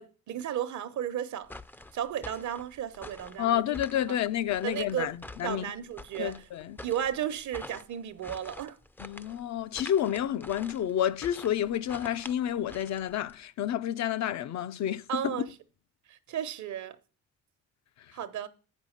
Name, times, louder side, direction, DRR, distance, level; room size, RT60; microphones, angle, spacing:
voice 1, 0.0-1.5 1.9-3.6 4.1-4.2 4.6-5.2 5.4-6.4 6.8-8.8 15.1-15.5 16.1-17.0 18.1-18.5, right 10 dB, 70° right, 1.0 m, -34 dB
sound 1, 1.4-13.4, left 2 dB, 5° left, 0.4 m, -47 dB
voice 2, 3.4-5.7 6.2-6.8 9.0-15.3, left 10 dB, 65° left, 0.6 m, -30 dB
8.2 x 5.5 x 6.4 m
cardioid pair, 90°, 30 cm